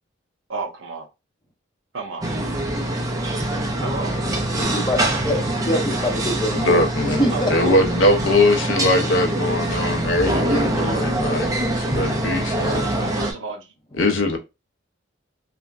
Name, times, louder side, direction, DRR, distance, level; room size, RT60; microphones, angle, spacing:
voice 1, 0.5-1.1 1.9-2.3 3.7-4.1 7.3-7.7 13.2-13.7, right 3 dB, 70° right, 0.7 m, -32 dB
sound 1, 2.2-13.3, right 1 dB, 15° right, 0.4 m, -24 dB
voice 2, 4.5-6.8 7.2-7.7, equal, 20° left, 0.7 m, -24 dB
voice 3, 6.5-7.2 7.5-13.1 14.0-14.4, left 2 dB, 70° left, 0.5 m, -21 dB
3.2 x 2.1 x 2.4 m
head